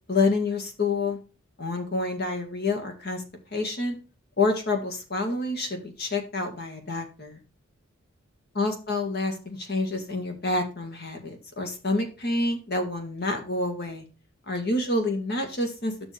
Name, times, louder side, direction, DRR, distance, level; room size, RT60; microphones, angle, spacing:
voice 1, 0.1-1.2 1.6-3.2 3.5-4.0 4.4-7.4 8.6-14.0 14.5-15.9, left 2 dB, 50° left, 4 dB, 1.8 m, -28 dB
9.1 x 6.0 x 3.4 m, 0.33 s
head